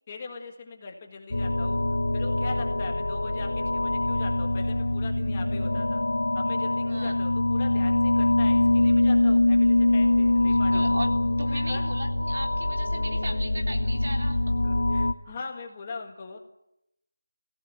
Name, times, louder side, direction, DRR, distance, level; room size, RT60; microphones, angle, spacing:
voice 1, 0.1-1.8 2.1-6.0 6.4-10.9 11.4-11.9 14.6-16.4, left 4 dB, 15° left, 2 dB, 1.7 m, -40 dB
sound 1, 1.3-15.1, left 2 dB, 75° left, 1.5 m, -24 dB
voice 2, 10.5-14.4, right 1 dB, 45° right, 2 dB, 3.6 m, -38 dB
26.0 x 17.0 x 9.4 m, 0.86 s
figure-of-eight pair, 180°, 0 cm